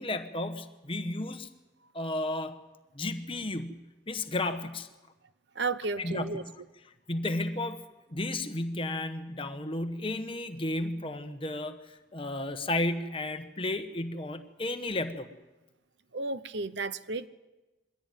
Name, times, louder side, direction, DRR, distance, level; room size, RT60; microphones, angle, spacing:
voice 1, 0.0-1.5 1.9-2.6 2.9-4.9 6.0-6.5 6.8-7.8 8.1-15.3, left 2 dB, 30° left, 8 dB, 1.2 m, -33 dB
voice 2, 5.6-6.4 16.1-17.3, right 3 dB, 65° right, 14 dB, 0.9 m, -33 dB
23.0 x 16.0 x 9.2 m, 1.1 s
head